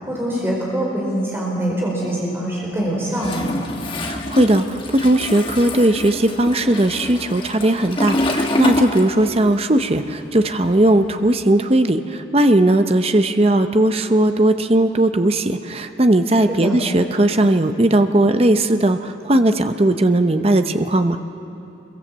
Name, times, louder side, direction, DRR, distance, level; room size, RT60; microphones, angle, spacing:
voice 1, 0.0-3.5 16.5-16.8, right 1 dB, 15° right, -3 dB, 4.4 m, -24 dB
Toilet flush, 3.2-9.6 9.9-11.5, left 1 dB, 30° left, 1.5 m, -26 dB
voice 2, 4.0-21.2, right 1 dB, 30° right, 8 dB, 0.8 m, -17 dB
25.0 x 23.0 x 7.5 m, 2.9 s
head